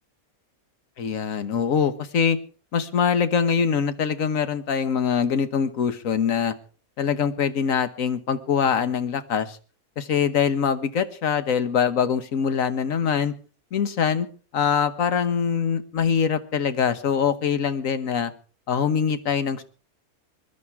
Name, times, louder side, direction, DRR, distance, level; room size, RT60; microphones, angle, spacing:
voice 1, 1.0-2.4 2.7-6.5 7.0-9.6 10.0-13.3 13.7-14.3 14.5-18.3 18.7-19.6, left 7 dB, 65° left, 12 dB, 1.5 m, -23 dB
21.5 x 11.5 x 4.7 m, 0.38 s
omnidirectional pair, 1.6 m